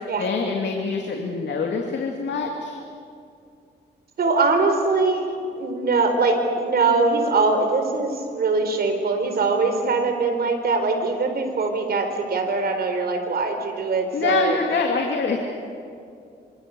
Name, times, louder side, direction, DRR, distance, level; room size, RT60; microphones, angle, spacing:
voice 1, 0.2-2.8 14.1-15.4, left 4 dB, 75° left, 1 dB, 2.6 m, -25 dB
voice 2, 4.2-14.6, right 3 dB, 60° right, 5 dB, 4.4 m, -22 dB
26.5 x 26.0 x 7.8 m, 2.4 s
wide cardioid pair, 130°, 18 cm